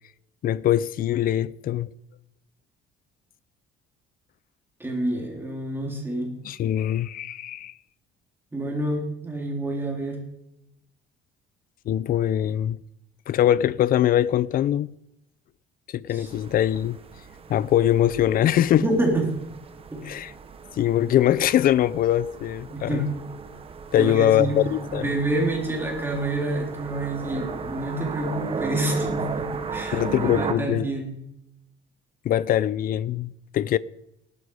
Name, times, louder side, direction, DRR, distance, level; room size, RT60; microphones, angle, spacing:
voice 1, 0.4-1.9 6.4-7.7 11.9-12.8 13.3-14.9 15.9-17.0 17.5-18.9 20.0-20.3 20.8-23.0 23.9-25.1 29.9-30.9 32.2-33.8, left 11 dB, 45° left, 0.5 m, -22 dB
voice 2, 4.8-6.3 8.5-10.2 16.1-16.3 18.8-19.3 19.9-20.0 22.7-23.1 24.0-24.6 24.9-31.1, right 1 dB, 10° right, 3.5 m, -28 dB
sound 1, 16.2-30.5, right 5 dB, 30° right, 1.0 m, -35 dB
17.5 x 12.5 x 4.9 m
cardioid pair, 165°, 20 cm